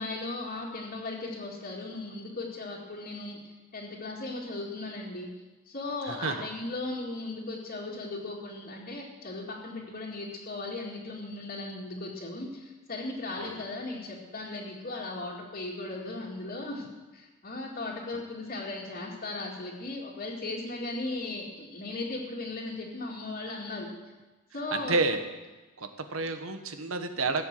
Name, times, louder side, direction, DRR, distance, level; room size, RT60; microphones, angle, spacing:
voice 1, 0.0-3.4 3.7-5.3 5.7-16.9 17.1-23.9 24.5-25.0, left 2 dB, 45° left, -7 dB, 2.2 m, -37 dB
voice 2, 6.1-6.4 13.4-13.5 18.1-18.2 24.7-25.2 25.8-27.4, right 3 dB, 80° right, 7 dB, 1.4 m, -30 dB
15.0 x 8.0 x 7.5 m, 1.2 s
head